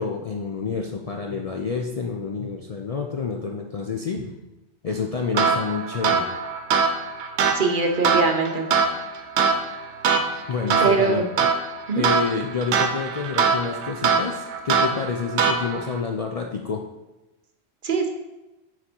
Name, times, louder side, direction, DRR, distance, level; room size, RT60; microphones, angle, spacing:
voice 1, 0.0-4.2 4.8-6.3 10.5-11.2 12.0-16.8, left 5 dB, 50° left, 2 dB, 0.4 m, -28 dB
sound 1, 5.3-16.0, right 5 dB, 85° right, 1.0 m, -23 dB
voice 2, 7.5-8.7 10.8-11.3 11.9-12.1 17.8-18.1, right 4 dB, 50° right, 4 dB, 0.9 m, -22 dB
6.7 x 4.2 x 4.4 m, 1.0 s
omnidirectional pair, 1.1 m